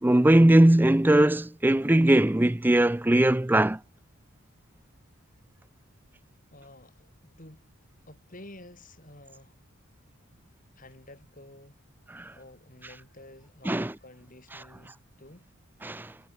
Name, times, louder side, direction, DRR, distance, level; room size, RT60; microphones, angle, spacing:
voice 1, 0.0-3.8 12.1-12.2 13.7-13.9 15.8-16.1, right 1 dB, 10° right, 0.4 m, -20 dB
voice 2, 6.5-7.7 8.1-9.6 10.7-11.8 12.3-15.5, left 1 dB, 40° left, 5.0 m, -50 dB
head